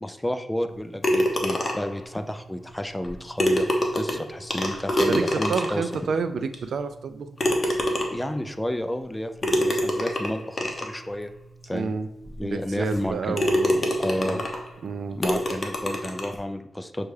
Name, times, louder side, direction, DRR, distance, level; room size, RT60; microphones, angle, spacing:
voice 1, 0.0-3.7 3.9-5.9 8.1-11.3 11.7-11.9 12.4-13.4 14.0-14.4 15.2-17.1, left 1 dB, 10° left, 7 dB, 0.3 m, -31 dB
sound 1, 1.0-2.0 3.0-3.1 3.4-5.9 6.5-6.6 7.4-8.3 9.4-10.9 11.6-11.7 12.2-12.3 12.9-13.1 13.4-14.7 15.2-16.4, equal, 40° left, 0.7 m, -25 dB
voice 2, 5.1-7.4 11.7-12.1 12.4-14.4 14.8-15.2, right 5 dB, 75° right, 10 dB, 0.3 m, -29 dB
6.4 x 2.3 x 3.2 m, 0.90 s
cardioid pair, 80°, 0 cm